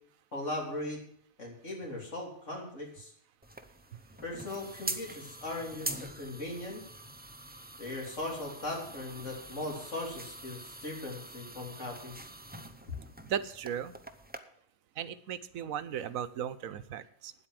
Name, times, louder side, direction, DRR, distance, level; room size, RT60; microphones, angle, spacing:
voice 1, 0.3-1.0 1.4-3.1 4.2-6.8 7.8-12.3, left 2 dB, 60° left, -1 dB, 3.8 m, -39 dB
sound 1, 3.4-14.4, right 1 dB, 10° right, 0.6 m, -44 dB
voice 2, 13.2-13.9 15.0-17.3, right 9 dB, 80° right, 14 dB, 1.2 m, -36 dB
9.6 x 8.2 x 7.6 m, 0.66 s
omnidirectional pair, 1.4 m